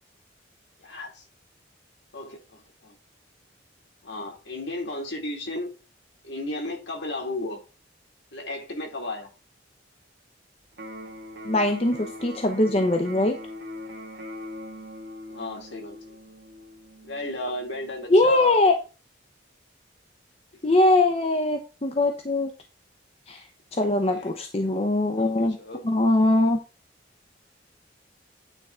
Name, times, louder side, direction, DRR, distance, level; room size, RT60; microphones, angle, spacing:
voice 1, 0.8-1.2 2.1-2.9 4.0-5.7 6.2-7.6 8.3-9.3 15.3-16.0 17.0-18.6 24.1-24.3 25.1-25.8, left 2 dB, 65° left, 2.4 m, -34 dB
Electric guitar, 10.7-18.7, left 1 dB, 60° right, 1.4 m, -42 dB
voice 2, 11.4-13.4 18.1-18.7 20.6-22.5 23.3-23.4 23.8-25.6 25.8-26.6, left 2 dB, 30° left, 0.7 m, -21 dB
9.1 x 3.8 x 4.3 m
head